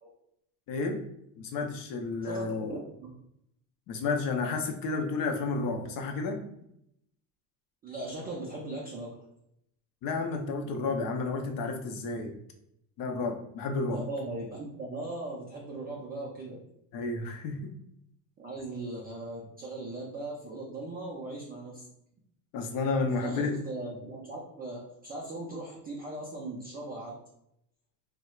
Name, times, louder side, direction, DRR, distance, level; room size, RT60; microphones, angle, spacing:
voice 1, 0.7-1.0 1.4-2.8 3.9-6.4 10.0-12.3 13.0-14.0 16.9-17.7 22.5-23.6, left 3 dB, 45° left, 4 dB, 0.6 m, -31 dB
voice 2, 2.2-3.1 7.8-9.1 13.9-16.6 18.4-21.8 23.1-27.2, right 2 dB, 20° right, -4 dB, 0.3 m, -39 dB
4.2 x 2.1 x 2.3 m, 0.76 s
supercardioid pair, 120°, 50 cm